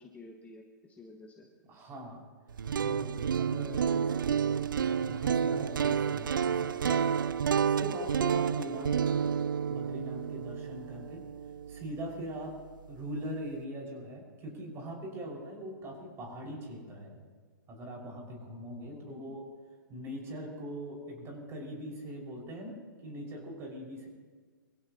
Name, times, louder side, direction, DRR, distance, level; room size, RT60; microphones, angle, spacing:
voice 1, 0.0-1.5 3.8-4.1 18.9-19.4, left 3 dB, 10° left, 2 dB, 1.3 m, -51 dB
voice 2, 1.6-2.3 2.8-4.1 4.7-7.0 7.6-9.2 9.7-11.2 11.7-12.6 12.9-17.2 17.7-19.4 19.9-22.8 23.0-24.1, equal, 25° right, 0 dB, 5.9 m, -41 dB
sound 1, 2.5-12.5, right 7 dB, 75° right, 0.5 m, -30 dB
24.5 x 16.0 x 3.0 m, 1.5 s
hypercardioid pair, 125°, 11 cm